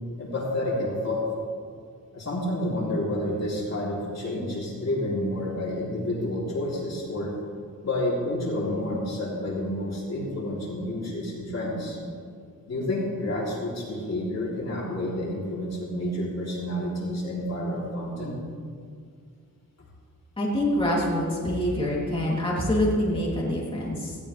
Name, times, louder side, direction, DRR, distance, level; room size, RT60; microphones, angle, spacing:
voice 1, 0.2-1.4 2.1-7.3 7.8-12.0 12.7-18.4, left 1 dB, 50° left, -5 dB, 3.7 m, -29 dB
voice 2, 20.4-24.2, left 1 dB, 15° left, -6 dB, 3.4 m, -25 dB
19.5 x 16.5 x 3.5 m, 2.1 s
wide cardioid pair, 170°, 34 cm